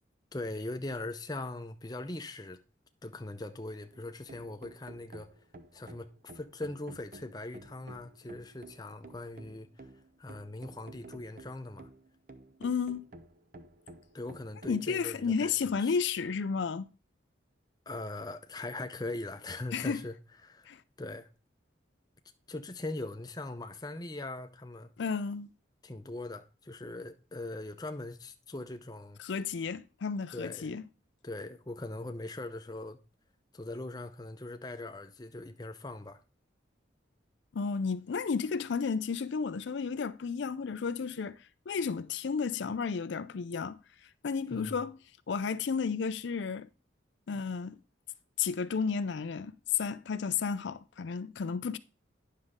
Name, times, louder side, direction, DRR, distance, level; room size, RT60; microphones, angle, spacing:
voice 1, 0.3-2.6 3.0-5.3 5.7-6.1 6.3-9.9 10.2-11.9 14.1-16.0 17.9-20.1 20.4-20.7 21.0-21.3 22.5-24.9 25.8-29.2 30.3-30.7 31.2-33.0 33.5-36.2 44.5-44.8, left 2 dB, 20° left, 0.6 m, -40 dB
sound 1, 3.9-14.8, right 2 dB, 45° right, 0.7 m, -52 dB
voice 2, 12.6-13.1 14.7-16.9 19.7-20.0 20.7-20.8 25.0-25.5 29.2-30.8 37.5-45.0 45.3-46.7 47.3-47.8 48.4-51.8, left 5 dB, 70° left, 0.4 m, -32 dB
9.7 x 6.5 x 3.6 m
head